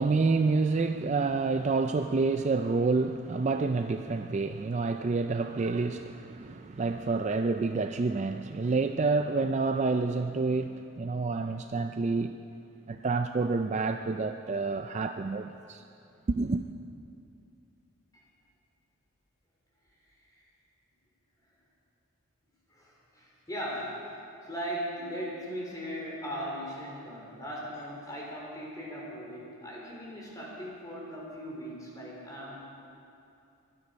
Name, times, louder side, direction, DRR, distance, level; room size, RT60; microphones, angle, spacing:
voice 1, 0.0-12.3 12.9-15.8 16.3-16.6, right 3 dB, 30° right, 7 dB, 0.3 m, -28 dB
voice 2, 22.7-24.0 24.4-32.9, equal, 15° left, -4 dB, 3.3 m, -38 dB
23.0 x 9.7 x 5.3 m, 2.7 s
head